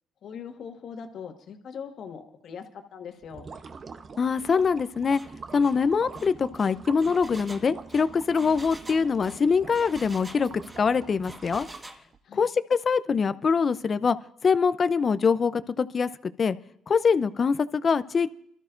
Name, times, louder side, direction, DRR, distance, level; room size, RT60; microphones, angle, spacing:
voice 1, 0.2-3.5 12.2-12.5, left 7 dB, 65° left, 5 dB, 1.5 m, -41 dB
sound 1, 3.2-12.2, right 5 dB, 45° right, 0.8 m, -45 dB
voice 2, 4.2-5.2 5.5-10.5 10.8-11.7 12.3-14.2 14.4-16.1 16.4-16.6 16.9-18.3, left 5 dB, 45° left, 13 dB, 0.6 m, -24 dB
Engine, 5.1-5.3 5.6-5.8 6.1-10.9 11.2-12.0, right 1 dB, 20° right, 1.4 m, -46 dB
27.5 x 13.0 x 2.6 m, 0.69 s
supercardioid pair, 65°, 0 cm